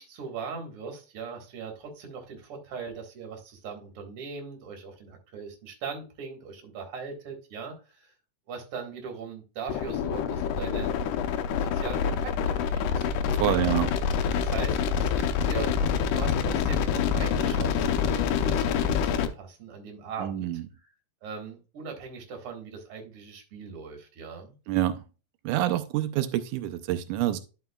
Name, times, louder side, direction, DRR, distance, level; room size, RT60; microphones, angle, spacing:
voice 1, 0.0-8.1 8.5-10.9 11.6-13.1 13.5-13.7 14.4-15.8 16.1-20.5 21.2-24.5, right 5 dB, 50° right, 3 dB, 2.4 m, -40 dB
sound 1, 9.7-19.3, left 7 dB, 85° left, 2.2 m, -26 dB
voice 2, 13.4-13.9 20.2-20.6 24.7-25.0 25.4-27.4, right 13 dB, 90° right, 9 dB, 2.1 m, -27 dB
11.5 x 5.3 x 2.3 m, 0.32 s
omnidirectional pair, 3.5 m